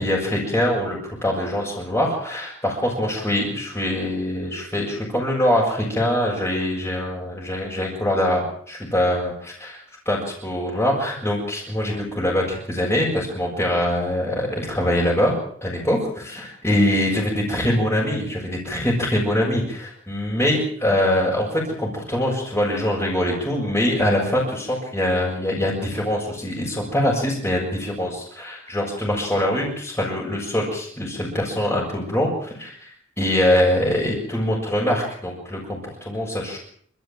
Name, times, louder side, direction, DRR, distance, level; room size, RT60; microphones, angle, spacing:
voice 1, 0.0-15.3 15.6-36.6, left 1 dB, 10° left, -5 dB, 7.2 m, -23 dB
28.0 x 14.5 x 9.3 m, 0.62 s
head